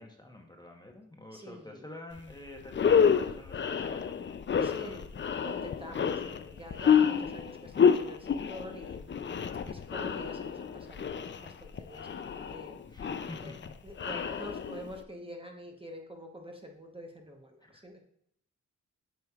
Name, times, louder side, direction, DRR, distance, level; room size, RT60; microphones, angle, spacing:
voice 1, 0.0-5.1 5.9-6.5 9.6-9.9 12.9-13.7 14.1-14.3 17.6-17.8, left 1 dB, 15° left, 2 dB, 1.0 m, -48 dB
voice 2, 1.3-1.9 4.6-5.1 5.4-9.4 9.7-12.8 13.4-13.5 13.8-18.0, equal, 15° right, 2 dB, 1.0 m, -46 dB
sound 1, 2.2-2.3 2.7-15.0, left 7 dB, 35° left, 0.4 m, -29 dB
7.6 x 5.2 x 2.4 m, 0.71 s
cardioid pair, 60°, 31 cm